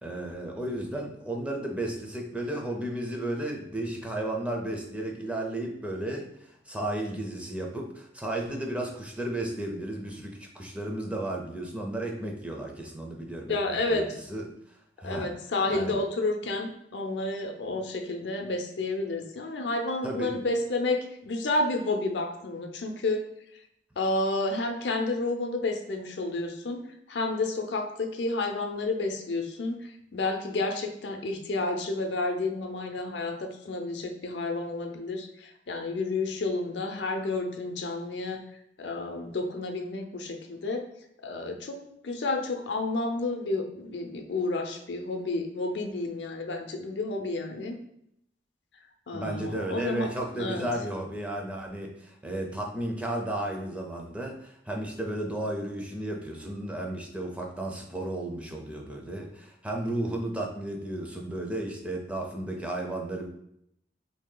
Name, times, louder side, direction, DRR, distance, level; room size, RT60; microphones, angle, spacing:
voice 1, 0.0-6.3 6.7-14.5 15.0-15.3 15.7-16.0 20.0-20.4 49.1-63.4, right 1 dB, 5° right, 1 dB, 0.4 m, -33 dB
voice 2, 13.5-14.2 15.0-23.2 24.0-26.8 27.1-38.4 38.8-40.8 41.2-41.8 42.0-47.8 49.1-50.1 50.3-50.7, left 2 dB, 70° left, 4 dB, 0.5 m, -30 dB
2.9 x 2.7 x 3.8 m, 0.75 s
head